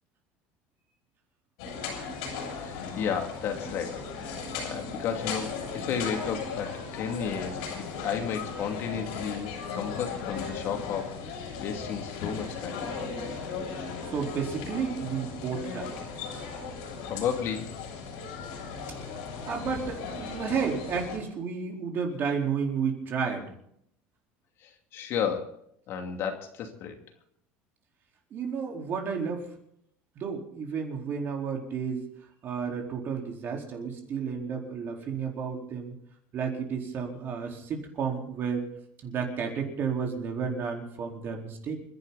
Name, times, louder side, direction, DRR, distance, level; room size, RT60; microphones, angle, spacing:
sound 1, 1.6-21.2, left 5 dB, 90° left, 7.1 m, -37 dB
voice 1, 2.6-12.9 17.0-17.7 24.6-25.6 25.9-27.0, left 7 dB, 55° left, 4 dB, 2.6 m, -33 dB
voice 2, 14.0-16.0 19.5-23.5 28.3-29.5 30.2-32.1 32.4-36.0 36.3-38.7 39.0-41.8, right 6 dB, 45° right, 1 dB, 4.3 m, -32 dB
29.0 x 11.5 x 4.2 m, 0.71 s
cardioid pair, 130°, 5 cm